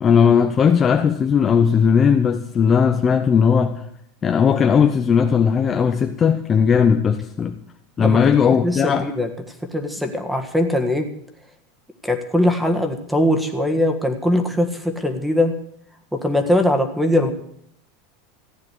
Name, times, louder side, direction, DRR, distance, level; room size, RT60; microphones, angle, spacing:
voice 1, 0.0-3.8 4.2-7.6 8.0-9.1, left 7 dB, 20° left, 0.7 m, -17 dB
voice 2, 8.6-9.3 9.7-11.1 12.0-15.5 16.1-17.3, left 1 dB, ahead, 1.5 m, -21 dB
15.0 x 9.7 x 8.3 m
supercardioid pair, 160°, 0 cm